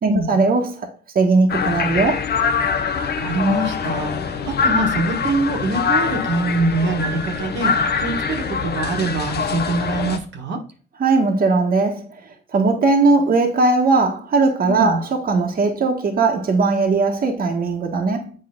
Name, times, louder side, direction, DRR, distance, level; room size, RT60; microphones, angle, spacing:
voice 1, 0.0-0.9 1.1-2.2 11.0-12.2 12.5-18.3, right 3 dB, 45° right, 1.5 m, -18 dB
sound 1, 1.5-10.2, left 5 dB, 55° left, 1.0 m, -23 dB
voice 2, 2.9-10.6 14.6-15.0, right 2 dB, 65° right, 1.6 m, -24 dB
8.1 x 5.0 x 3.8 m
cardioid pair, 90°, 20 cm